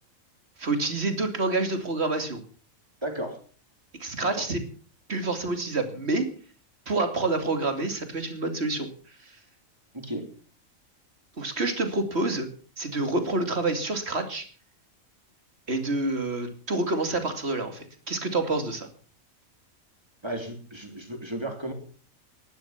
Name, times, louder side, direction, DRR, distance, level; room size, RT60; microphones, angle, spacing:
voice 1, 0.6-2.4 4.0-4.6 5.1-6.3 6.9-8.9 9.2-9.4 11.4-12.5 12.8-14.5 15.7-18.9, right 2 dB, 50° right, 7 dB, 2.9 m, -28 dB
voice 2, 3.0-3.4 9.9-10.2 20.2-21.7, right 1 dB, 20° right, 5 dB, 3.5 m, -34 dB
19.5 x 12.0 x 5.8 m, 0.41 s
omnidirectional pair, 1.4 m